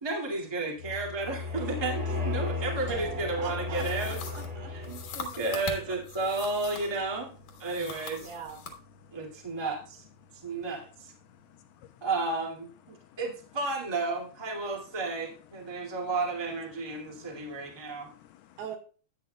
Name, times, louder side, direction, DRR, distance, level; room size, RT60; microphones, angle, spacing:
voice 1, 0.0-4.2 4.7-7.3 7.6-8.3 9.1-10.0 10.4-11.1 12.0-18.1, right 3 dB, 15° right, -1 dB, 0.9 m, -32 dB
sound 1, 0.8-5.4, left 4 dB, 35° right, 2.5 m, -35 dB
sound 2, 2.9-12.6, right 3 dB, 60° right, 2.5 m, -48 dB
voice 2, 3.4-4.7 8.2-8.7 18.6-18.8, right 7 dB, 85° right, 5 dB, 4.0 m, -41 dB
sound 3, 3.7-7.0 7.5-8.8, left 5 dB, 60° left, 2.3 m, -42 dB
voice 3, 11.3-12.1 12.9-13.2 15.7-16.1 17.0-18.6, left 12 dB, 80° left, 7 dB, 2.5 m, -57 dB
14.5 x 9.4 x 2.3 m, 0.38 s
omnidirectional pair, 4.9 m